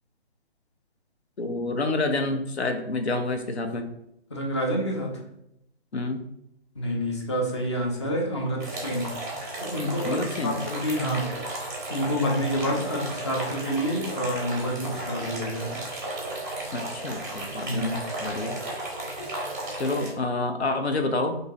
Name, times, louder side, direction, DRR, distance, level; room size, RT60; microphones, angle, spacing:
voice 1, 1.4-3.9 5.9-6.2 10.0-10.6 16.7-18.6 19.8-21.4, left 2 dB, 80° left, 6 dB, 0.6 m, -28 dB
voice 2, 4.3-5.2 6.7-9.1 9.6-11.5 11.9-15.9 17.6-17.9, equal, 25° left, 0 dB, 0.5 m, -28 dB
sound 1, 8.6-20.1, right 1 dB, 15° right, 0.5 m, -34 dB
2.9 x 2.6 x 3.8 m, 0.80 s
figure-of-eight pair, 140°, 32 cm